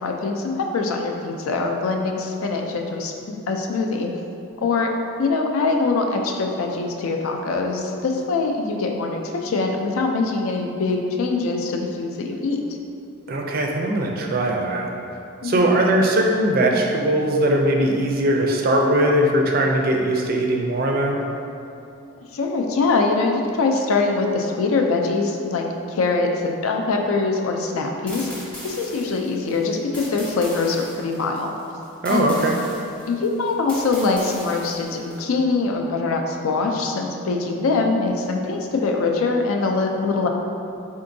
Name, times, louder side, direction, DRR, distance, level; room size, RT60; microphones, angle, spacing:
voice 1, 0.0-4.1 4.6-4.9 5.2-12.6 15.4-15.7 22.3-28.3 28.6-31.5 32.1-32.4 33.1-40.3, left 3 dB, 75° left, 2 dB, 0.4 m, -23 dB
voice 2, 13.3-14.9 15.4-21.2 32.0-32.6, right 1 dB, 45° right, 1 dB, 0.4 m, -20 dB
sound 1, 28.1-35.2, equal, 5° left, 0.8 m, -39 dB
4.4 x 3.7 x 2.6 m, 2.6 s
head